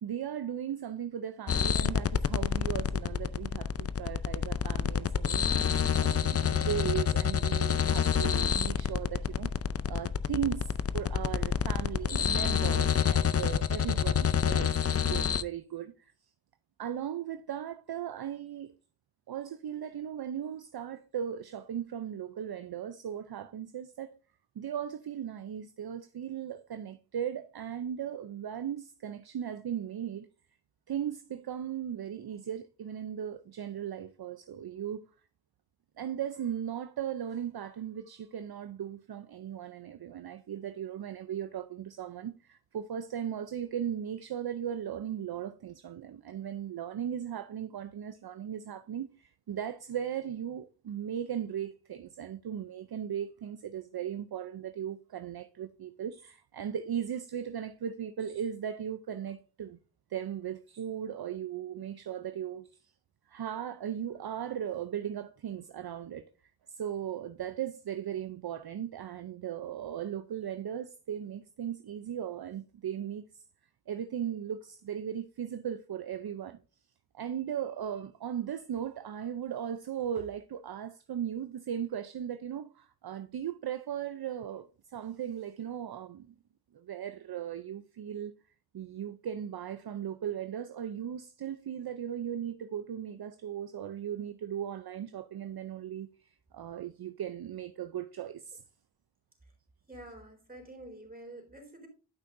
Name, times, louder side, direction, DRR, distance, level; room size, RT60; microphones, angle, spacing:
voice 1, 0.0-9.5 9.9-16.1 16.8-18.7 19.3-24.1 24.6-30.3 30.9-35.1 36.0-59.8 60.1-62.9 63.3-73.4 73.9-76.6 77.1-86.3 86.7-88.3 88.7-98.6, right 9 dB, 55° right, 0.6 m, -37 dB
sound 1, 1.5-15.4, left 7 dB, 35° left, 0.5 m, -28 dB
voice 2, 99.8-101.9, right 1 dB, 20° right, 3.9 m, -48 dB
11.5 x 5.8 x 2.6 m
cardioid pair, 50°, 44 cm